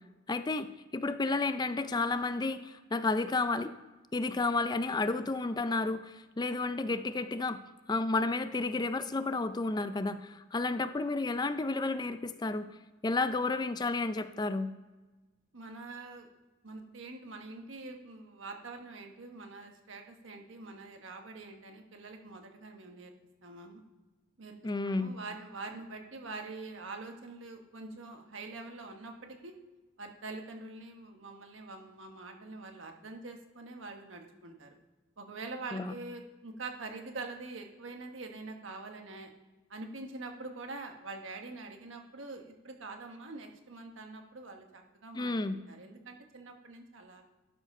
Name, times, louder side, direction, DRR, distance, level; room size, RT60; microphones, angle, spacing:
voice 1, 0.3-3.7 4.1-7.6 7.9-12.7 13.0-14.7 24.6-25.1 35.7-35.9 45.1-45.6, left 3 dB, 20° left, 11 dB, 0.4 m, -31 dB
voice 2, 15.5-16.3 16.6-23.1 23.4-23.8 24.4-29.6 30.0-34.7 35.2-39.3 39.7-47.2, right 3 dB, 85° right, 4 dB, 1.3 m, -45 dB
11.5 x 4.9 x 5.4 m, 1.2 s
head